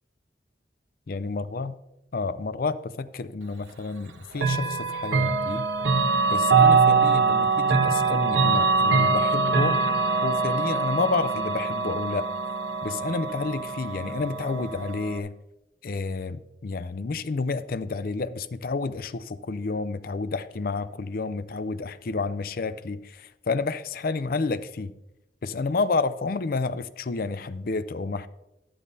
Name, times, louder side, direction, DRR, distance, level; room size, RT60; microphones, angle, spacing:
voice 1, 1.1-1.7 2.1-5.7 6.3-9.8 10.2-12.3 12.8-15.3 15.8-24.9 25.4-28.3, left 4 dB, 50° left, 14 dB, 0.5 m, -30 dB
Chime / Clock, 4.4-15.2, right 4 dB, 85° right, 0.9 m, -23 dB
12.0 x 11.5 x 2.7 m, 0.91 s
head